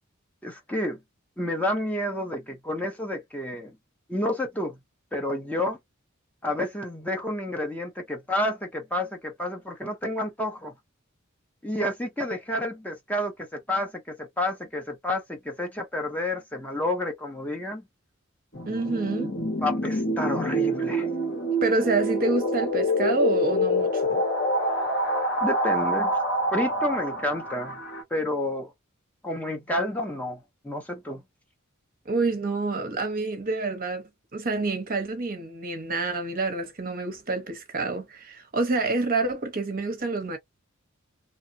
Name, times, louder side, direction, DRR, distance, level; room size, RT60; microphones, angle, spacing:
voice 1, 0.4-1.0 1.4-3.7 4.1-4.8 5.1-5.8 6.4-10.7 11.6-17.8 19.6-21.1 25.4-26.2 26.5-27.8 28.1-28.7 29.2-31.2, left 1 dB, 10° left, 0.7 m, -30 dB
sound 1, 18.5-28.0, equal, 50° left, 1.6 m, -26 dB
voice 2, 18.7-19.3 21.6-24.2 32.0-40.4, right 3 dB, 45° right, 0.9 m, -28 dB
2.9 x 2.3 x 2.6 m
head